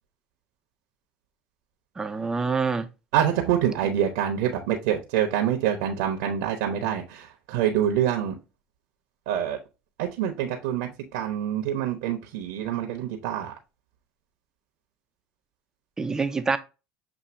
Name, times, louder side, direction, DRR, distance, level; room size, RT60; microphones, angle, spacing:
voice 1, 2.0-2.9 16.0-16.6, right 4 dB, 20° right, 0.6 m, -26 dB
voice 2, 3.1-8.3 9.3-9.6 10.0-13.5, right 10 dB, 80° right, 1.0 m, -26 dB
7.1 x 2.7 x 2.6 m
supercardioid pair, 100°, 3 cm